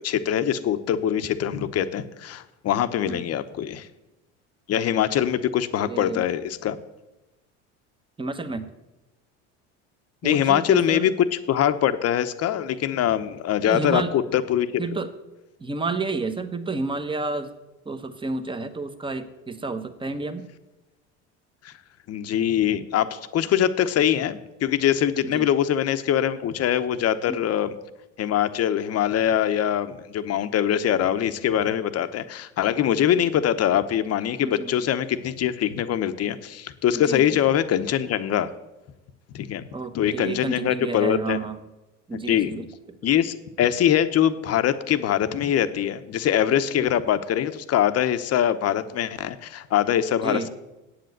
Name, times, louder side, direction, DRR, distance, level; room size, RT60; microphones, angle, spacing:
voice 1, 0.0-3.9 4.7-6.8 10.2-14.7 21.6-21.7 22.1-27.8 28.2-38.5 39.3-39.7 39.9-41.4 42.1-42.6 43.0-50.5, left 10 dB, 45° left, 11 dB, 0.9 m, -23 dB
voice 2, 5.9-6.2 8.2-8.7 10.2-11.1 13.7-14.1 14.8-15.1 15.6-17.5 17.9-20.5 25.3-25.5 27.3-27.4 34.4-34.7 37.1-37.2 39.7-41.6 42.1-42.6 46.8-46.9 50.2-50.5, right 3 dB, 15° right, 10 dB, 1.1 m, -30 dB
8.4 x 7.8 x 7.9 m, 1.0 s
supercardioid pair, 90°, 35 cm